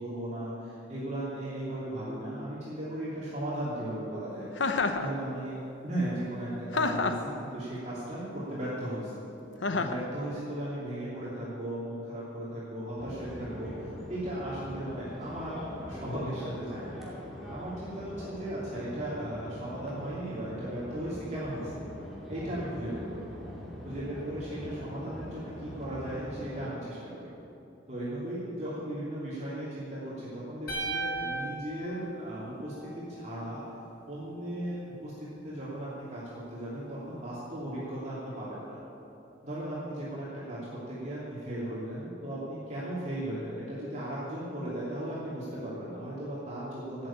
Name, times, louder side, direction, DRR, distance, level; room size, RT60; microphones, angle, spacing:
voice 1, 0.0-4.5 5.0-9.1 9.7-17.0 17.5-21.8 22.3-23.3 23.8-27.2 27.9-33.6 34.1-38.8 39.4-47.1, right 1 dB, 40° right, -9 dB, 3.0 m, -36 dB
Chuckle chortle, 4.6-5.1 6.7-7.3 9.6-10.0, left 3 dB, 90° left, 0.8 m, -28 dB
sound 1, 13.0-26.6, equal, ahead, 2.8 m, -43 dB
sound 2, 30.7-32.9, right 2 dB, 55° left, 2.5 m, -36 dB
13.5 x 8.4 x 8.6 m, 2.9 s
head